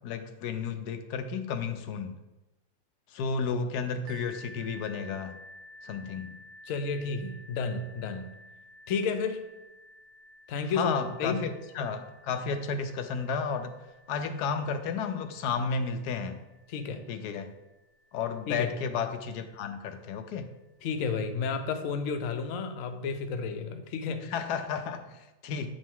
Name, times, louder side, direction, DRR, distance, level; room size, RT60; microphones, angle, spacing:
voice 1, 0.0-2.2 3.1-5.4 5.8-6.4 10.7-13.8 14.1-16.4 17.1-17.5 18.1-20.5 24.2-25.7, left 5 dB, 80° left, 8 dB, 1.1 m, -32 dB
sound 1, 4.1-19.6 20.4-20.5 21.0-21.1, left 1 dB, 55° right, 0.9 m, -53 dB
voice 2, 6.7-8.3 8.9-9.4 10.5-10.9 11.2-11.4 16.7-17.1 18.5-18.7 20.8-24.3, left 5 dB, 65° left, 6 dB, 1.0 m, -31 dB
8.6 x 5.2 x 3.7 m, 1.1 s
omnidirectional pair, 1.7 m